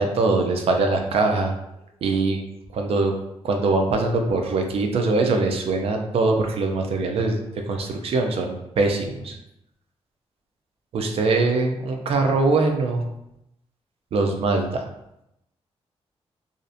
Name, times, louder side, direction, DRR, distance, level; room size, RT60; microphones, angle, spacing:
voice 1, 0.0-1.5 2.0-2.4 2.7-3.2 3.4-7.4 7.7-9.4 10.9-13.0 14.1-14.8, right 3 dB, 65° right, 4 dB, 0.4 m, -22 dB
2.4 x 2.0 x 2.6 m, 0.84 s
wide cardioid pair, 115°, 11 cm